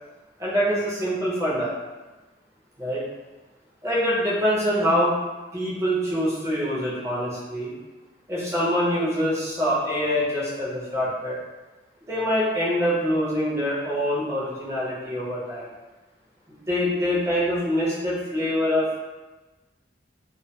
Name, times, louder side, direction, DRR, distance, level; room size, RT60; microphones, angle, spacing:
voice 1, 0.4-1.7 2.8-3.0 3.8-5.2 5.5-7.7 8.3-11.4 12.1-15.7 16.5-19.0, equal, 15° right, -7 dB, 0.5 m, -25 dB
2.2 x 2.2 x 2.7 m, 1.2 s
head